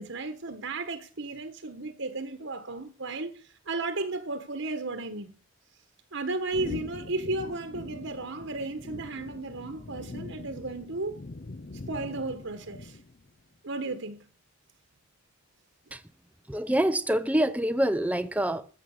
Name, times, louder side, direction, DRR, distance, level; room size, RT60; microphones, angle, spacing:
voice 1, 0.0-5.3 6.1-11.2 11.9-13.0 13.6-14.2, right 2 dB, 65° right, 1.3 m, -34 dB
sound 1, 6.5-13.3, left 2 dB, 45° left, 0.7 m, -42 dB
voice 2, 16.5-18.7, right 1 dB, 5° right, 0.7 m, -26 dB
14.5 x 7.3 x 6.6 m
head